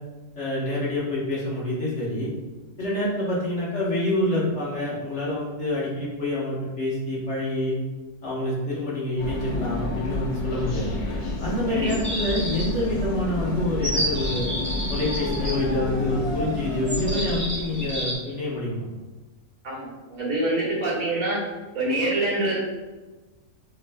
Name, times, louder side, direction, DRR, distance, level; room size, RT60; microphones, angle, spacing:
voice 1, 0.3-2.3 2.8-7.8 8.2-10.9 11.4-14.5 14.9-18.9, left 1 dB, 50° left, -6 dB, 1.3 m, -27 dB
sound 1, 9.2-18.1, left 1 dB, 75° left, 0.3 m, -30 dB
sound 2, 11.9-12.9 13.8-15.5 16.9-18.1, equal, 10° right, 1.1 m, -30 dB
voice 2, 19.6-21.4 21.7-22.6, right 2 dB, 65° right, -7 dB, 2.1 m, -25 dB
6.8 x 3.1 x 2.3 m, 1.2 s
omnidirectional pair, 1.6 m